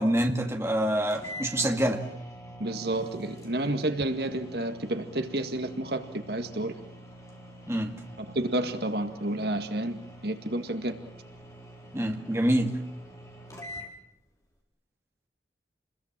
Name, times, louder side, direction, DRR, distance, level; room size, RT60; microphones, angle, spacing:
voice 1, 0.0-2.1 7.7-7.9 11.9-12.8, right 1 dB, 15° right, 3 dB, 2.0 m, -26 dB
sound 1, 0.7-0.8 1.1-13.9, equal, 20° left, 4.4 m, -46 dB
voice 2, 2.6-6.8 8.3-10.0 10.2-11.0, right 1 dB, 60° right, 7 dB, 1.9 m, -30 dB
29.5 x 21.0 x 7.5 m, 0.79 s
head